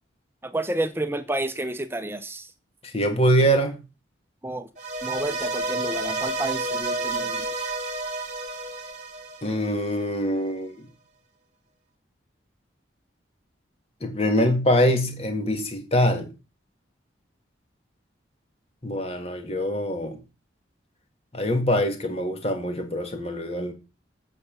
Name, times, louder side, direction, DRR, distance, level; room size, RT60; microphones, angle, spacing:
voice 1, 0.4-2.5 4.4-4.7 5.0-7.5, right 2 dB, 10° right, 0.7 m, -30 dB
voice 2, 2.8-3.7 9.4-10.9 14.0-16.3 18.8-20.2 21.3-23.7, equal, 30° left, 1.8 m, -24 dB
sound 1, 4.8-10.0, right 2 dB, 35° right, 2.1 m, -30 dB
8.5 x 6.9 x 6.9 m
head